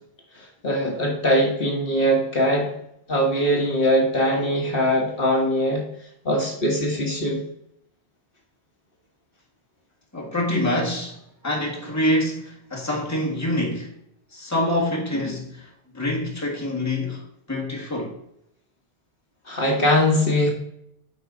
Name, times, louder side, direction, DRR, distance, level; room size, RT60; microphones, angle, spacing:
voice 1, 0.3-2.7 3.1-5.8 6.2-7.4 19.5-20.5, equal, 55° left, 1.7 m, -21 dB
voice 2, 10.1-13.9 14.3-18.2, left 1 dB, 15° left, 1.7 m, -26 dB
9.2 x 4.7 x 3.9 m
omnidirectional pair, 1.1 m